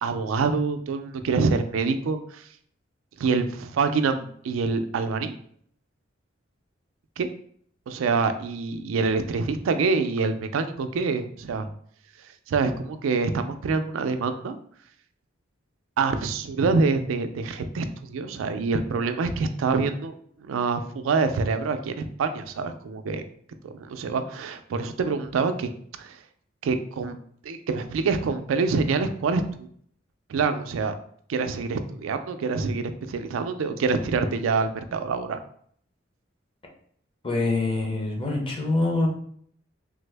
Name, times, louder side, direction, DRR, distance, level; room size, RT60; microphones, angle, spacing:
voice 1, 0.0-2.5 3.2-5.3 7.2-7.3 7.9-11.7 12.5-14.6 16.0-23.2 23.6-25.7 26.0-26.2 26.6-27.2 27.4-29.7 30.3-31.0 31.3-35.4, right 4 dB, 85° right, 9 dB, 0.4 m, -26 dB
voice 2, 37.2-39.1, left 2 dB, 25° left, 0 dB, 0.7 m, -25 dB
3.3 x 2.0 x 3.2 m, 0.62 s
head